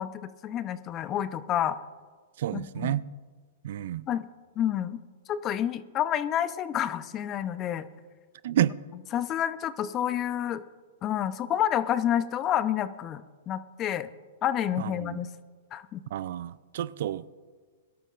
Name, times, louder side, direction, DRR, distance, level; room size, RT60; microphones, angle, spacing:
voice 1, 0.0-1.8 2.5-3.0 4.1-4.3 4.6-5.0 5.3-7.8 9.1-10.6 11.0-14.1 14.4-15.3 15.7-16.0, left 10 dB, 30° left, 0.7 m, -29 dB
voice 2, 2.4-3.0 3.6-4.0 8.4-8.7 14.8-15.2 16.1-17.4, right 12 dB, 65° right, 0.4 m, -30 dB
22.5 x 12.5 x 2.5 m
hypercardioid pair, 120°, 0 cm